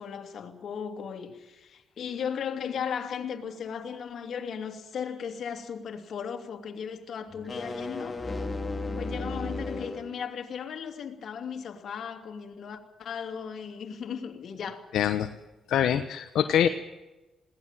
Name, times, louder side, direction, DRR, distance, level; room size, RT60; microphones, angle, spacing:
voice 1, 0.0-8.2 8.9-14.8, left 7 dB, 60° left, 2.8 m, -36 dB
sound 1, 7.3-10.1, left 2 dB, 20° left, 2.4 m, -34 dB
voice 2, 14.9-15.3 15.7-16.7, left 10 dB, 75° left, 1.0 m, -24 dB
21.0 x 18.0 x 7.6 m
cardioid pair, 90°, 0 cm